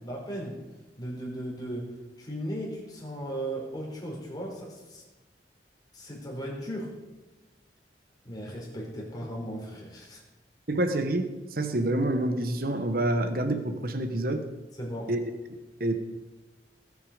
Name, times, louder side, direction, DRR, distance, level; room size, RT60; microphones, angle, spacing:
voice 1, 0.0-0.6 1.0-1.9 2.2-5.0 5.9-7.0 8.2-10.2 14.8-15.1, right 1 dB, 25° left, -1 dB, 4.0 m, -36 dB
voice 2, 10.7-14.4 15.1-15.2 15.5-15.9, right 1 dB, 55° right, 8 dB, 1.3 m, -27 dB
19.0 x 8.6 x 5.0 m, 1.2 s
head